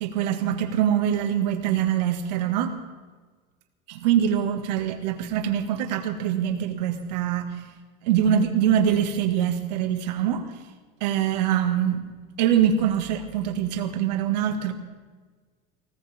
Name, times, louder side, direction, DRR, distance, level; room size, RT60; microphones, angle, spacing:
voice 1, 0.0-2.7 3.9-7.5 8.0-10.4 11.0-12.0 12.4-14.7, right 9 dB, 85° right, 7 dB, 1.9 m, -24 dB
20.0 x 19.0 x 3.6 m, 1.4 s
supercardioid pair, 120°, 21 cm